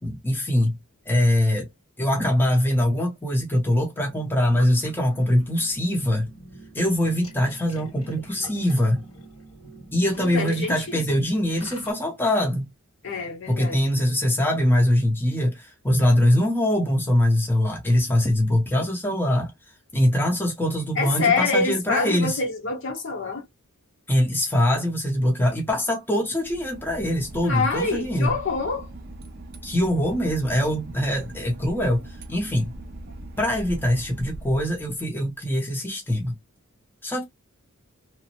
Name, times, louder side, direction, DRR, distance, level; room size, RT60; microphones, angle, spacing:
voice 1, 0.0-0.8 1.1-1.7 2.0-6.3 6.7-9.0 9.9-12.7 13.5-19.5 19.9-22.4 24.1-28.3 29.6-32.7 33.4-36.3 37.0-37.2, left 1 dB, 10° left, 0.7 m, -23 dB
sound 1, 4.0-11.9, equal, 70° left, 1.4 m, -45 dB
voice 2, 10.2-11.0 13.0-13.9 21.0-23.4 27.4-28.9, left 4 dB, 55° left, 0.9 m, -26 dB
Boat Water vehicle / Engine, 26.4-35.3, right 1 dB, 45° right, 0.5 m, -40 dB
2.9 x 2.0 x 2.8 m
head